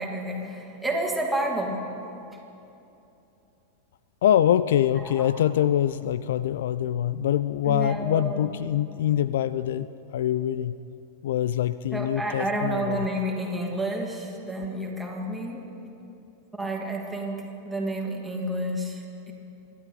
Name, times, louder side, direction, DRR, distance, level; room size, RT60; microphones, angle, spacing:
voice 1, 0.0-1.8 5.0-5.4 7.6-8.5 11.9-15.6 16.6-19.3, right 1 dB, 5° right, -2 dB, 2.7 m, -30 dB
voice 2, 4.2-10.8 11.2-13.1, left 11 dB, 60° left, 15 dB, 0.3 m, -24 dB
26.5 x 12.5 x 4.0 m, 2.8 s
figure-of-eight pair, 90°, 0 cm